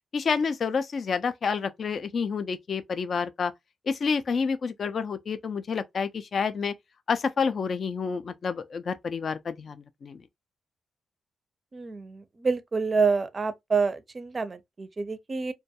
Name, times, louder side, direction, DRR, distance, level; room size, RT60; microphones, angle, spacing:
voice 1, 0.1-3.5 3.9-6.7 7.1-10.2, left 5 dB, 55° left, 0.3 m, -29 dB
voice 2, 11.7-15.5, right 4 dB, 35° right, 0.4 m, -27 dB
2.2 x 2.2 x 2.7 m
cardioid pair, 70°, 0 cm